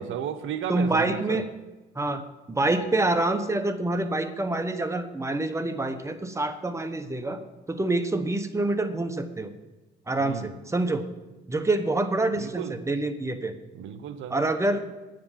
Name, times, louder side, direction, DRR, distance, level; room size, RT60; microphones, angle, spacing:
voice 1, 0.0-1.4 10.2-10.5 12.4-12.8 13.7-14.4, right 8 dB, 80° right, 10 dB, 0.8 m, -34 dB
voice 2, 0.7-1.4 1.9-7.4 7.7-9.5 10.1-11.0 11.5-13.5 14.3-14.8, right 2 dB, 15° right, 8 dB, 1.1 m, -26 dB
9.4 x 7.7 x 7.3 m, 1.1 s
cardioid pair, 90°, 20 cm